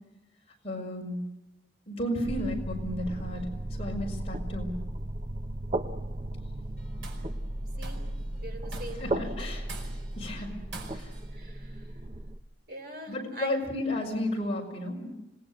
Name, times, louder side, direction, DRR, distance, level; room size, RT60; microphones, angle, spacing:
voice 1, 0.6-1.2 1.9-3.4 3.7-4.7 9.0-9.7 10.1-10.5 10.9-11.1 13.1-15.1, left 1 dB, 30° left, 0 dB, 5.2 m, -33 dB
sound 1, 2.2-12.4, right 1 dB, 30° right, 0.7 m, -35 dB
Tools, 6.8-7.3 7.8-8.2 8.7-9.2 9.7-10.2 10.7-11.3, right 3 dB, 80° right, 5.1 m, -44 dB
voice 2, 8.4-9.3 10.4-10.5 11.3-12.0 12.7-13.6, right 1 dB, 50° right, 6 dB, 3.6 m, -43 dB
26.0 x 20.0 x 7.7 m, 0.94 s
head